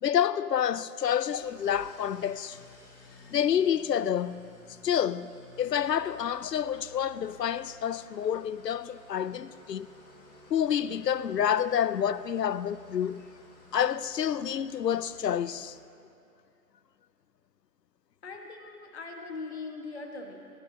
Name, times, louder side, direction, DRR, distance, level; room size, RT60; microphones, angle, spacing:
voice 1, 0.0-2.6 3.3-4.5 4.8-9.9 10.5-13.3 13.7-15.8, left 9 dB, 85° left, 0.6 m, -28 dB
Engine starting / Idling, 1.1-15.8, left 2 dB, 10° left, 2.0 m, -55 dB
voice 2, 18.2-20.5, left 3 dB, 40° left, 1.6 m, -40 dB
19.0 x 16.5 x 2.8 m
figure-of-eight pair, 160°, 48 cm